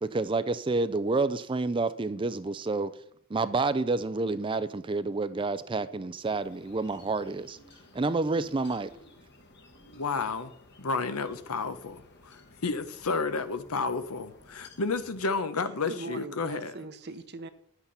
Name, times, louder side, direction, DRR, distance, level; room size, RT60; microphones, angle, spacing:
voice 1, 0.0-2.9 3.3-7.6 7.9-8.9, right 3 dB, 25° right, 0.4 m, -29 dB
sound 1, 6.2-15.4, left 2 dB, 50° left, 1.4 m, -56 dB
voice 2, 9.9-10.5 10.8-16.7, left 4 dB, 85° left, 0.9 m, -31 dB
voice 3, 15.9-17.5, right 3 dB, 50° right, 1.0 m, -40 dB
10.5 x 8.2 x 5.6 m
head